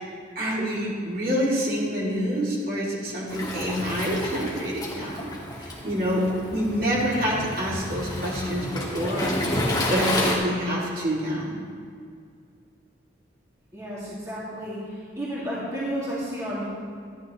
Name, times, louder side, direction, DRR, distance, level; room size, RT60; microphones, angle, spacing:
voice 1, 0.3-5.3 5.6-6.2 6.5-9.4 9.9-11.6, equal, 50° right, -6 dB, 2.6 m, -27 dB
Waves surf, 3.3-10.4, left 1 dB, 20° left, 1.4 m, -30 dB
voice 2, 13.7-16.7, equal, 15° right, -8 dB, 2.2 m, -32 dB
13.0 x 10.5 x 3.1 m, 2.2 s
head